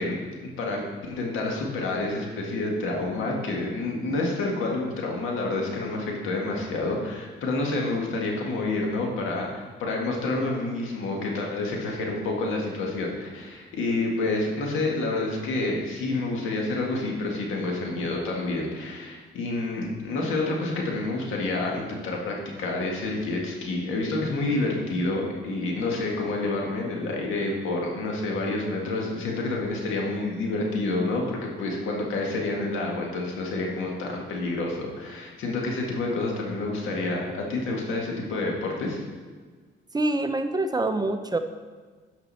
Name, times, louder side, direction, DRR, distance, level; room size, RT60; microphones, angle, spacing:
voice 1, 0.0-39.0, left 2 dB, 85° left, 0 dB, 1.9 m, -28 dB
voice 2, 39.9-41.4, right 2 dB, 20° right, 8 dB, 0.6 m, -25 dB
12.0 x 5.3 x 4.2 m, 1.4 s
cardioid pair, 90°, 20 cm